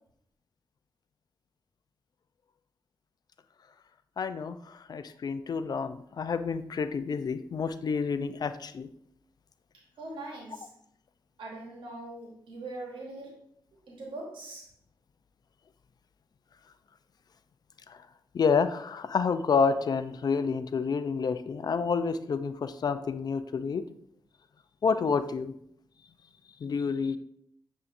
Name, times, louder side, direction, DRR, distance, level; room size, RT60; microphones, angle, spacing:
voice 1, 4.2-8.9 17.9-18.0 18.3-23.8 24.8-25.5 26.6-27.2, left 5 dB, 55° left, 12 dB, 0.4 m, -29 dB
voice 2, 10.0-10.7 11.4-13.4 13.9-14.7, right 2 dB, 85° right, -1 dB, 1.0 m, -41 dB
6.8 x 2.7 x 2.5 m, 0.70 s
cardioid pair, 50°, 8 cm